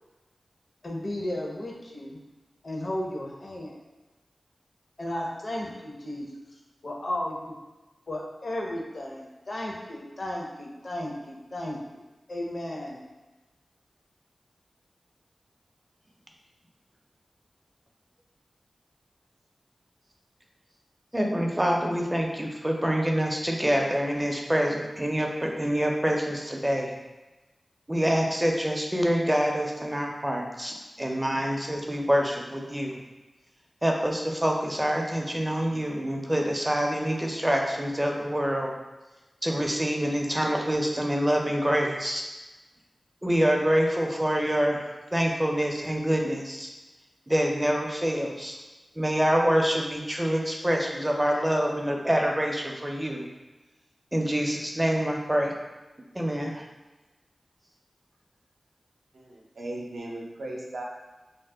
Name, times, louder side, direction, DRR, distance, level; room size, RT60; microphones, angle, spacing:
voice 1, 0.8-2.2 2.6-3.8 5.0-6.3 6.8-7.6 8.1-11.8 12.3-13.0, left 1 dB, 55° left, -1 dB, 0.5 m, -34 dB
voice 2, 21.1-26.9 27.9-33.0 33.8-38.7 39.4-42.2 43.2-44.8 45.1-46.7 47.3-48.6 49.0-53.3 54.1-55.5 56.1-56.6, equal, 15° right, 0 dB, 0.4 m, -26 dB
voice 3, 59.1-60.8, right 1 dB, 75° right, -2 dB, 0.5 m, -37 dB
2.7 x 2.0 x 3.3 m, 1.1 s
wide cardioid pair, 70°, 0 cm